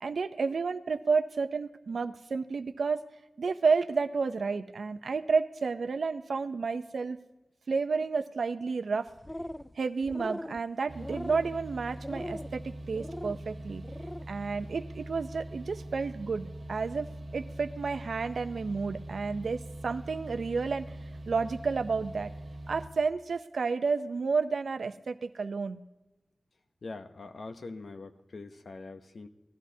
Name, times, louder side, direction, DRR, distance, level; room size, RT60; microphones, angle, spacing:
voice 1, 0.0-3.0 3.4-7.2 7.7-9.1 9.8-13.8 14.3-20.9 21.3-22.3 22.7-25.8, right 4 dB, 80° right, 10 dB, 0.5 m, -31 dB
sound 1, 9.1-9.7 10.0-10.6 11.0-11.5 12.0-12.5 12.9-13.4 13.8-14.3, left 1 dB, 15° left, 0.3 m, -40 dB
sound 2, 10.9-22.9, right 1 dB, 50° right, 0.9 m, -43 dB
voice 2, 26.8-29.3, left 3 dB, 70° left, 8 dB, 0.8 m, -43 dB
17.0 x 11.5 x 2.7 m, 1.0 s
cardioid pair, 50°, 0 cm